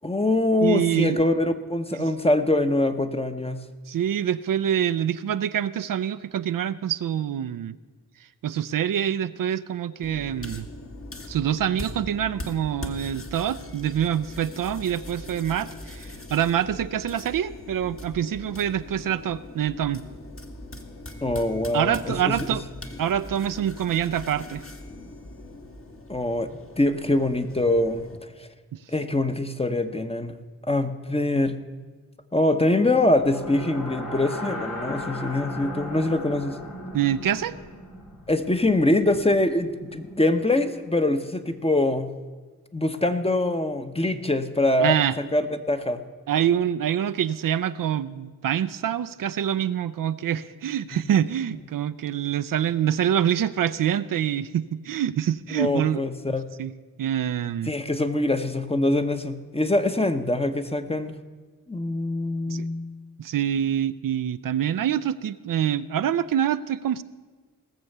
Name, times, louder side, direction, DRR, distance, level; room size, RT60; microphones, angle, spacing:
voice 1, 0.0-3.6 21.2-22.3 26.1-26.5 26.8-28.1 28.4-28.5 28.9-30.3 30.7-31.6 32.3-36.6 38.3-42.1 42.7-46.0 50.9-51.0 55.5-56.5 57.7-61.1 61.7-62.9, left 2 dB, 15° left, 8 dB, 1.0 m, -24 dB
voice 2, 0.6-1.2 1.9-2.0 3.9-7.8 8.4-10.7 11.3-20.0 21.7-22.6 23.0-24.6 28.7-28.8 36.9-37.5 44.8-45.2 46.3-56.0 56.6-56.7 57.0-57.7 62.5-62.7 63.2-67.0, right 10 dB, 75° right, 13 dB, 0.5 m, -25 dB
sound 1, 10.0-28.2, left 1 dB, 40° left, 1.6 m, -41 dB
sound 2, 32.9-40.9, left 1 dB, 80° left, 2.2 m, -37 dB
18.0 x 7.0 x 6.7 m, 1.4 s
cardioid pair, 50°, 34 cm